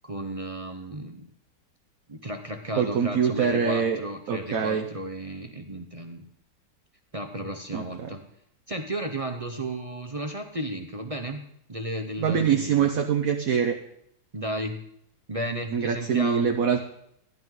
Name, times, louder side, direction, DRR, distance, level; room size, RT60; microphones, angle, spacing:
voice 1, 0.0-1.3 2.1-6.2 7.1-8.2 8.7-11.4 11.7-12.9 14.3-14.8 15.3-16.5, right 1 dB, 35° right, 4 dB, 0.5 m, -34 dB
voice 2, 2.8-4.0 4.3-4.9 7.7-8.1 12.2-13.8 15.7-16.8, right 7 dB, 60° right, 4 dB, 1.1 m, -24 dB
13.5 x 11.0 x 3.8 m, 0.72 s
omnidirectional pair, 1.8 m